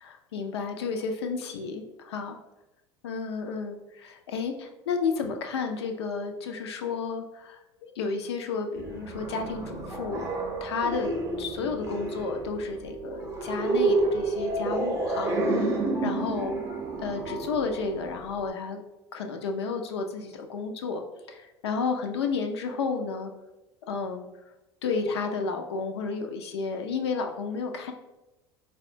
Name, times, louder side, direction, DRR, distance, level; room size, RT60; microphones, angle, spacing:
voice 1, 0.3-2.4 3.0-10.3 10.6-18.8 19.1-21.0 21.3-23.3 23.9-24.3 24.8-27.9, left 4 dB, 80° left, 4 dB, 0.4 m, -32 dB
sound 1, 8.8-18.5, right 2 dB, 20° right, 0.6 m, -30 dB
4.1 x 2.2 x 2.6 m, 1.0 s
hypercardioid pair, 75°, 14 cm